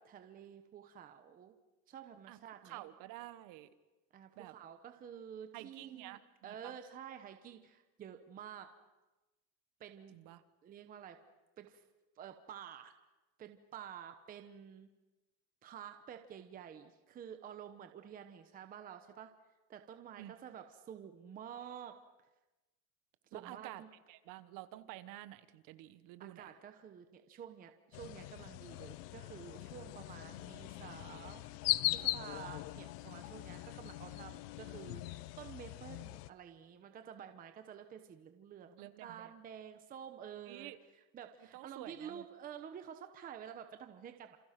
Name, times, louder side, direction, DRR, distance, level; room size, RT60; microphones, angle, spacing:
voice 1, 0.0-1.6 1.9-2.8 4.1-8.7 9.8-10.2 10.6-11.2 11.6-11.8 12.2-12.9 13.4-14.9 15.6-19.3 19.7-22.0 23.3-23.9 26.2-31.4 31.9-40.7 41.1-44.4, right 8 dB, 20° right, 7 dB, 1.0 m, -50 dB
voice 2, 2.6-3.7 4.4-4.5 5.5-6.8 10.1-10.4 20.2-20.3 23.3-23.8 24.1-26.5 38.8-39.3 40.5-40.8 41.5-42.2, right 15 dB, 40° right, 12 dB, 1.3 m, -50 dB
sound 1, 27.9-36.3, left 18 dB, 75° left, 1.1 m, -40 dB
28.5 x 28.0 x 6.0 m, 1.1 s
cardioid pair, 175°, 48 cm